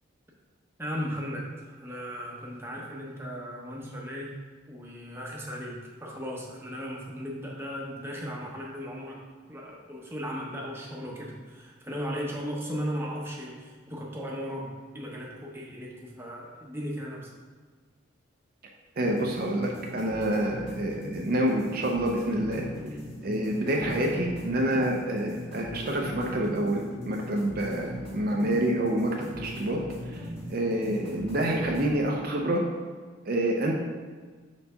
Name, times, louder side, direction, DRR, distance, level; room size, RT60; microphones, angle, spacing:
voice 1, 0.8-4.3 4.7-9.2 9.5-17.3, equal, 10° right, -3 dB, 0.8 m, -36 dB
voice 2, 19.0-22.7 23.2-30.2 30.5-32.6 33.3-33.7, right 1 dB, 45° right, 0 dB, 0.5 m, -27 dB
sound 1, 19.1-32.0, left 1 dB, 30° left, 1.7 m, -39 dB
4.4 x 4.0 x 5.5 m, 1.5 s
head